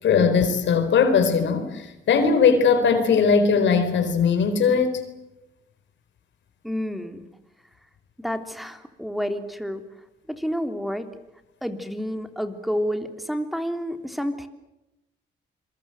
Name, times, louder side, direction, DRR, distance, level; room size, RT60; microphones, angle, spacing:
voice 1, 0.0-5.0, left 5 dB, 70° left, 4.4 m, -19 dB
voice 2, 6.6-7.2 8.2-9.8 10.3-11.1 11.6-14.5, equal, ahead, 3.3 m, -29 dB
26.5 x 23.5 x 7.9 m
cardioid pair, 90°, 20 cm